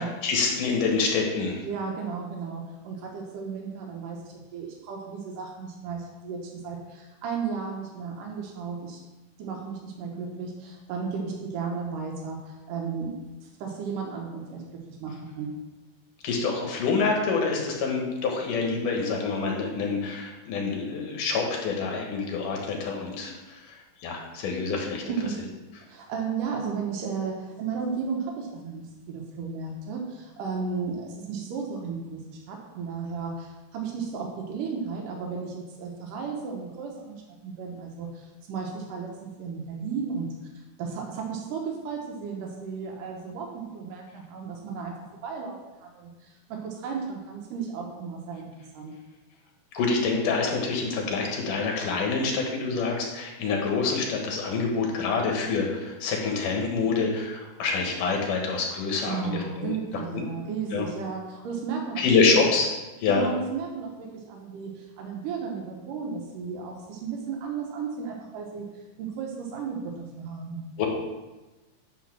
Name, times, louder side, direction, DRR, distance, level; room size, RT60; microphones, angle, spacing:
voice 1, 0.0-1.6 16.2-23.7 24.0-25.0 49.7-59.8 60.7-60.9 62.0-62.7 63.0-63.3 70.8-70.9, left 4 dB, 80° left, 0 dB, 3.0 m, -26 dB
voice 2, 1.6-9.0 9.4-13.1 13.4-15.5 25.0-25.4 25.8-40.3 40.8-48.5 48.7-48.9 59.0-62.0 63.1-68.7 69.0-70.6, right 5 dB, 85° right, 1 dB, 2.7 m, -34 dB
10.0 x 4.2 x 6.1 m, 1.1 s
omnidirectional pair, 3.7 m